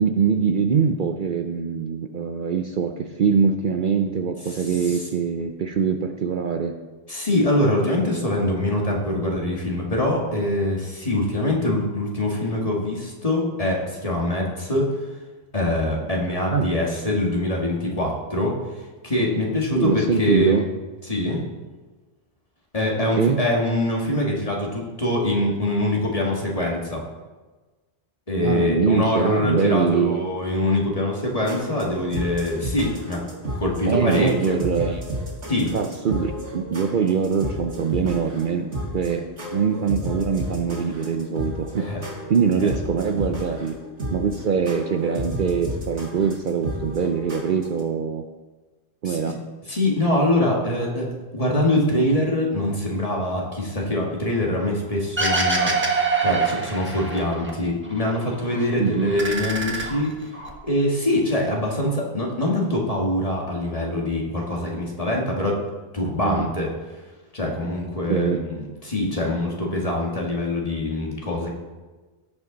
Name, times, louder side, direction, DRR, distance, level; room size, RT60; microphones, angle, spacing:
voice 1, 0.0-6.7 11.1-11.3 16.5-16.7 19.8-20.6 23.1-23.4 28.4-30.2 33.9-35.0 35.7-38.7 38.9-41.9 42.3-43.7 44.1-48.2 49.0-49.4 58.8-59.1 66.2-66.5 68.1-68.4, right 6 dB, 55° right, 6 dB, 0.7 m, -23 dB
voice 2, 4.5-5.1 7.1-15.1 15.5-20.7 21.0-21.4 22.7-27.0 28.3-33.2 33.6-34.6 35.5-35.7 41.8-42.0 42.6-42.7 49.0-49.3 49.7-60.3 60.6-65.6 65.9-67.0 67.3-71.5, left 1 dB, 35° left, -2 dB, 1.9 m, -24 dB
sound 1, 31.2-47.8, equal, 85° right, 2.4 m, -33 dB
sound 2, 55.2-57.5 57.8-58.7 59.0-60.5, right 4 dB, 10° right, 1.3 m, -24 dB
17.0 x 5.9 x 3.9 m, 1.3 s
omnidirectional pair, 1.1 m